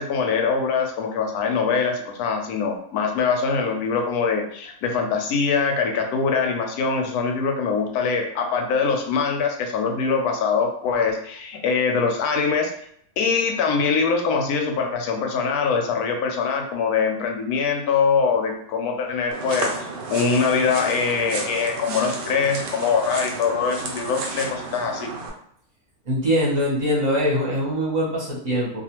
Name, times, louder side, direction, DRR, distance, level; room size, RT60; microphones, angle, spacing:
voice 1, 0.0-12.7 13.2-25.1, left 5 dB, 85° left, 3 dB, 1.1 m, -23 dB
sound 1, 19.3-25.3, right 3 dB, 75° right, 0.5 m, -32 dB
voice 2, 26.1-28.8, equal, 35° right, -5 dB, 0.8 m, -22 dB
2.4 x 2.4 x 2.9 m, 0.66 s
omnidirectional pair, 1.5 m